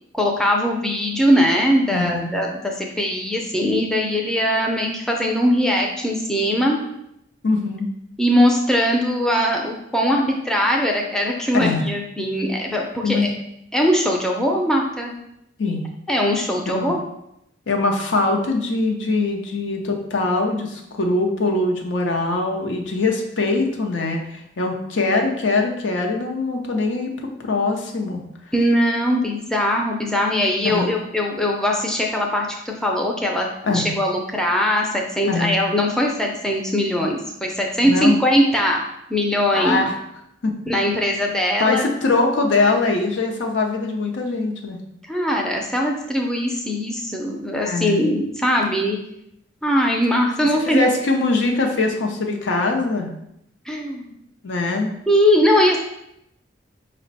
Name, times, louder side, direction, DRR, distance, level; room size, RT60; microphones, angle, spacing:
voice 1, 0.1-6.8 8.2-13.3 13.7-15.1 16.1-17.0 28.5-33.5 33.7-38.8 39.1-39.8 40.7-41.9 45.1-49.0 49.6-50.9 53.7-54.1 55.1-55.8, equal, 5° left, -1 dB, 0.4 m, -20 dB
voice 2, 1.9-2.3 7.4-7.9 11.5-11.9 13.0-13.3 15.6-15.9 16.7-16.9 17.7-28.2 30.6-30.9 33.6-33.9 35.2-35.6 37.8-38.2 39.5-39.9 40.4-40.5 41.6-44.8 47.5-48.0 50.7-53.1 54.4-54.9, left 3 dB, 75° left, 2 dB, 0.6 m, -22 dB
5.0 x 2.1 x 4.0 m, 0.79 s
head